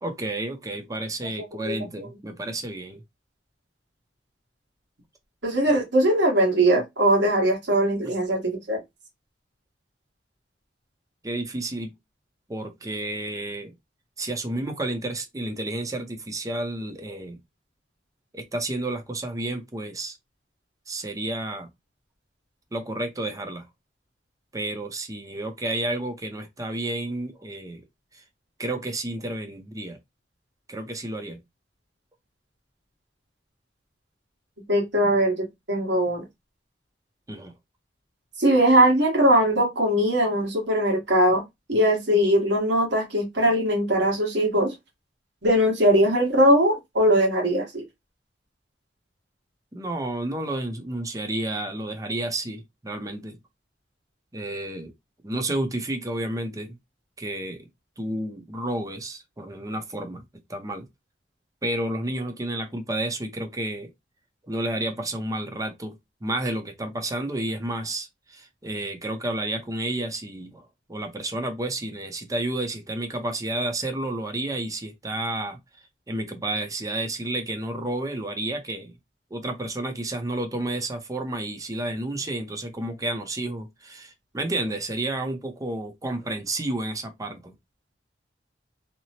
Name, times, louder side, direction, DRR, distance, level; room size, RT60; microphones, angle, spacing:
voice 1, 0.0-3.0 11.2-11.9 12.5-13.7 14.2-17.4 18.3-20.2 20.9-21.7 22.7-23.6 24.5-27.8 28.1-28.2 28.6-30.0 30.7-31.4 37.3-37.5 49.7-53.4 54.3-54.9 55.2-56.8 57.2-57.7 58.0-60.2 60.5-60.9 61.6-63.9 64.4-66.0 66.2-75.6 76.1-78.9 79.3-87.5, right 1 dB, 20° right, 0.6 m, -31 dB
voice 2, 5.4-8.8 34.7-36.2 38.4-41.4 41.7-44.7 45.4-47.8, right 1 dB, 85° right, 1.2 m, -20 dB
2.8 x 2.0 x 2.8 m
head